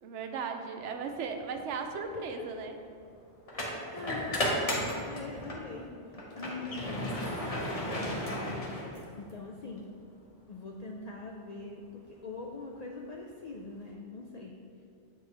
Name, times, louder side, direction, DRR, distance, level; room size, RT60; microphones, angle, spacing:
voice 1, 0.0-2.7, right 5 dB, 75° right, 5 dB, 0.9 m, -37 dB
sound 1, 1.4-1.6 3.5-5.7 6.1-9.3, left 1 dB, 35° left, 0.9 m, -34 dB
voice 2, 3.5-7.1 7.9-9.9 10.5-14.6, left 3 dB, 65° left, -1 dB, 0.4 m, -43 dB
7.8 x 4.5 x 3.2 m, 2.4 s
omnidirectional pair, 1.2 m